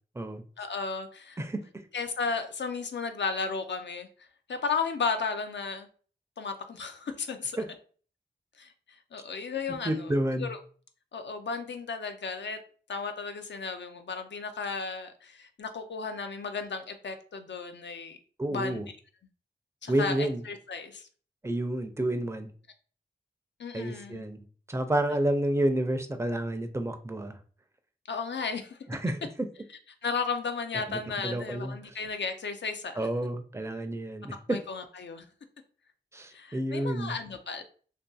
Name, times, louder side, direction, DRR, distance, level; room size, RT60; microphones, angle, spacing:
voice 1, 0.6-1.4 1.9-4.1 4.5-5.9 6.4-7.6 8.6-8.7 9.1-10.1 10.4-10.6 11.1-12.6 12.9-18.2 18.5-18.8 19.8-21.1 23.6-24.3 28.1-28.8 30.0-33.0 34.5-35.3 36.3-37.6, left 5 dB, 75° left, 7 dB, 0.4 m, -34 dB
voice 2, 9.8-10.5 18.4-18.9 19.9-20.4 21.4-22.5 23.7-27.4 28.9-29.5 30.9-32.0 33.0-34.6 36.1-37.2, right 1 dB, 15° right, 7 dB, 0.4 m, -30 dB
2.6 x 2.5 x 2.3 m, 0.42 s
cardioid pair, 40°, 19 cm